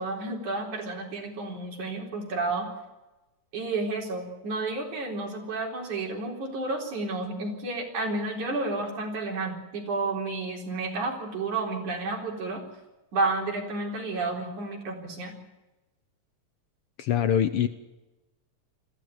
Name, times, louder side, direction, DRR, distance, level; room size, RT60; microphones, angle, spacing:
voice 1, 0.0-2.7 3.5-12.6 13.1-15.3, right 3 dB, 90° right, 1 dB, 5.5 m, -31 dB
voice 2, 17.0-17.7, left 9 dB, 70° left, 11 dB, 1.4 m, -23 dB
21.0 x 15.0 x 9.3 m, 1.1 s
omnidirectional pair, 3.3 m